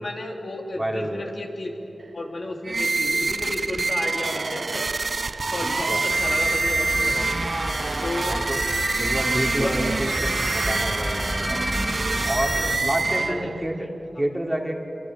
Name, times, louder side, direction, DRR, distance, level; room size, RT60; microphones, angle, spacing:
voice 1, 0.0-1.7 2.1-4.8 5.5-7.3 8.0-8.4 9.5-10.3 13.1-13.5 13.8-13.9, left 2 dB, 55° left, 0 dB, 3.3 m, -32 dB
voice 2, 0.8-1.3 5.6-6.1 8.2-8.6 8.9-11.8 12.2-13.8 14.2-14.8, right 1 dB, 15° right, 1 dB, 2.9 m, -29 dB
sound 1, 2.6-13.7, right 3 dB, 55° right, 0.5 m, -26 dB
sound 2, 6.1-12.8, equal, 10° left, 1.7 m, -30 dB
26.5 x 25.0 x 7.6 m, 2.9 s
wide cardioid pair, 70°, 0 cm